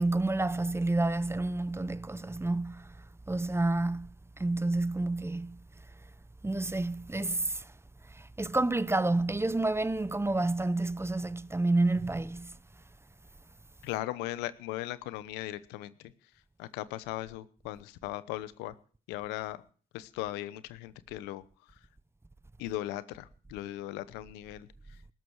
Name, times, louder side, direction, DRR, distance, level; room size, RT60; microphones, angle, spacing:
voice 1, 0.0-3.0 3.3-4.1 4.4-5.6 6.4-7.7 8.1-12.6, right 2 dB, 15° right, 0.9 m, -29 dB
voice 2, 13.8-16.1 16.6-18.7 19.1-19.6 19.9-21.4 22.6-24.7, left 15 dB, 85° left, 0.9 m, -38 dB
20.0 x 12.5 x 4.7 m
hypercardioid pair, 50°, 17 cm